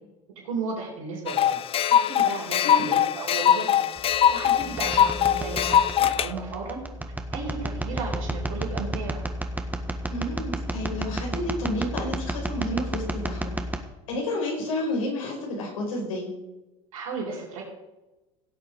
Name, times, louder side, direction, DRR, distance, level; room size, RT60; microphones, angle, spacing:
voice 1, 0.4-1.6 2.1-3.9 4.3-6.8 7.3-9.2 16.9-17.6, right 4 dB, 85° right, -4 dB, 4.2 m, -34 dB
sound 1, 1.3-6.3, left 10 dB, 35° left, 0.5 m, -22 dB
voice 2, 2.6-3.0 10.0-13.5 14.1-16.3, left 1 dB, 85° left, 0 dB, 4.9 m, -30 dB
sound 2, 4.0-13.8, right 1 dB, 10° right, 1.5 m, -32 dB
17.0 x 7.6 x 5.2 m, 1.0 s
hypercardioid pair, 85°, 17 cm